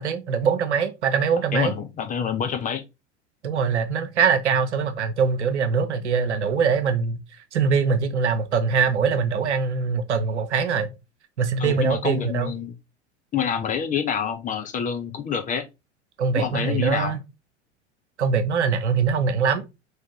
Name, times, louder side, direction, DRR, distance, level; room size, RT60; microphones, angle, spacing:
voice 1, 0.0-1.7 3.4-7.2 7.5-10.9 11.4-12.5 16.2-17.2 18.2-19.6, right 5 dB, 70° right, 0.9 m, -23 dB
voice 2, 1.5-2.8 11.6-12.7 13.3-15.7 16.3-17.1, left 7 dB, 20° left, 0.6 m, -27 dB
3.6 x 3.2 x 4.4 m
figure-of-eight pair, 80°, 35 cm